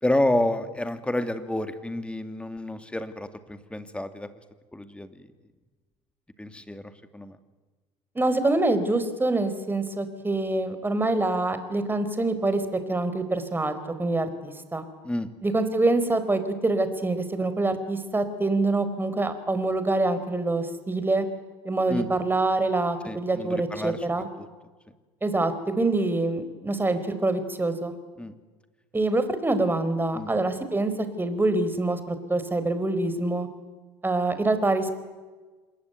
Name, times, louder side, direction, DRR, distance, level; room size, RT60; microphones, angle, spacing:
voice 1, 0.0-4.3 4.7-5.3 6.4-7.4 15.0-15.3 21.9-22.1 23.0-24.1 24.4-24.5 28.2-28.3 30.1-30.3, left 1 dB, 10° left, 9 dB, 2.6 m, -29 dB
voice 2, 8.1-12.6 12.9-14.8 15.4-21.3 21.6-24.3 25.2-28.0 28.9-33.5 34.0-35.0, right 2 dB, 15° right, 10 dB, 4.4 m, -25 dB
27.5 x 21.0 x 9.3 m, 1.3 s
hypercardioid pair, 70°, 14 cm